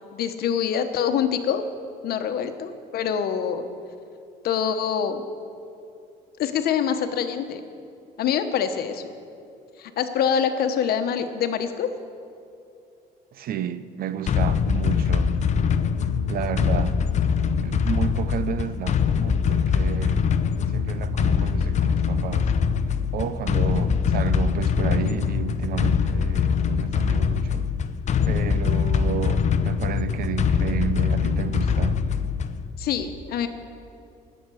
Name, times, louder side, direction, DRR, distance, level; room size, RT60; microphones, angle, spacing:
voice 1, 0.1-1.6 2.0-3.7 4.4-5.2 6.4-7.6 8.2-9.0 9.8-11.9 32.8-33.5, left 8 dB, 65° left, 1.2 m, -25 dB
voice 2, 13.3-15.4 16.3-17.0 17.6-20.2 20.7-22.5 23.1-27.7 28.3-32.0, right 9 dB, 60° right, 0.8 m, -31 dB
sound 1, 14.3-32.7, left 6 dB, 45° left, 0.7 m, -23 dB
20.0 x 8.1 x 6.4 m
cardioid pair, 110°, 17 cm